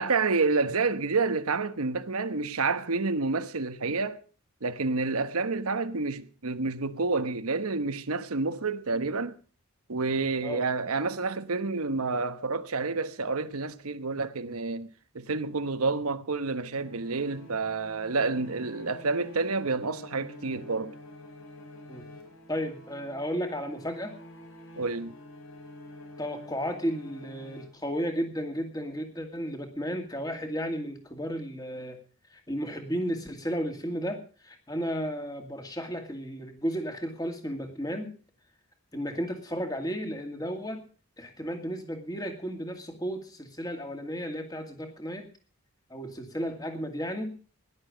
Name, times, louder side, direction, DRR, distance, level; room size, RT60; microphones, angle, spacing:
voice 1, 0.0-4.2 4.6-9.4 9.9-20.9 24.8-25.2, right 3 dB, 80° right, 1.1 m, -29 dB
sound 1, 16.8-28.2, left 1 dB, 65° left, 5.0 m, -48 dB
voice 2, 22.5-24.1 26.2-32.0 32.3-38.2 38.9-40.8 41.2-45.3 45.9-47.4, equal, 15° left, 2.3 m, -33 dB
17.5 x 11.5 x 5.1 m
head